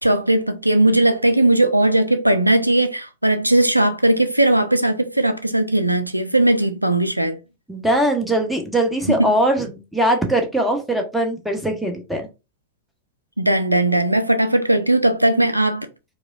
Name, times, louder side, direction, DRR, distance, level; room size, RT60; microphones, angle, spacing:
voice 1, 0.0-7.4 9.1-9.3 13.4-15.9, right 1 dB, 85° right, 0.3 m, -18 dB
voice 2, 7.7-12.2, right 1 dB, ahead, 1.0 m, -21 dB
4.8 x 2.1 x 2.6 m
figure-of-eight pair, 90°, 0 cm